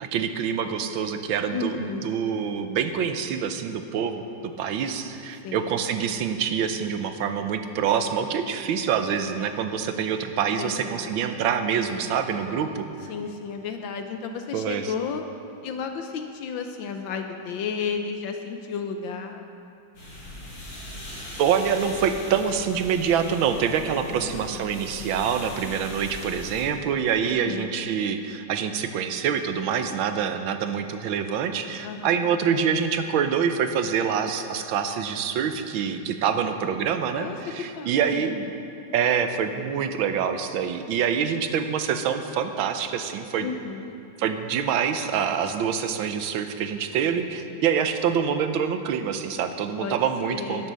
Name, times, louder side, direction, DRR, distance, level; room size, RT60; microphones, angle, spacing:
voice 1, 0.0-12.8 14.5-14.8 21.4-38.5 38.9-43.5 44.2-50.7, right 7 dB, 85° right, 8 dB, 1.6 m, -26 dB
voice 2, 1.5-2.1 5.4-5.8 10.5-11.2 13.1-15.2 15.6-19.4 24.1-24.7 27.2-27.8 31.8-32.3 37.1-37.4 37.7-38.2 43.4-43.9 49.8-50.0 50.3-50.7, left 6 dB, 75° left, 5 dB, 1.4 m, -33 dB
sound 1, 19.9-26.6, left 1 dB, 60° left, 4.8 m, -40 dB
12.0 x 10.0 x 6.3 m, 2.6 s
omnidirectional pair, 2.2 m